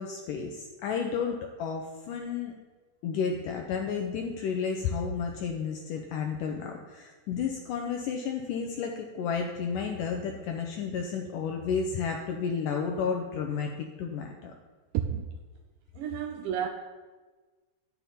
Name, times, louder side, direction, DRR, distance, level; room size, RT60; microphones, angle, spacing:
voice 1, 0.0-2.6 3.0-14.5, left 6 dB, 85° left, 2 dB, 1.9 m, -32 dB
voice 2, 16.0-16.7, right 8 dB, 85° right, 4 dB, 1.9 m, -32 dB
10.5 x 7.1 x 4.3 m, 1.3 s
omnidirectional pair, 4.4 m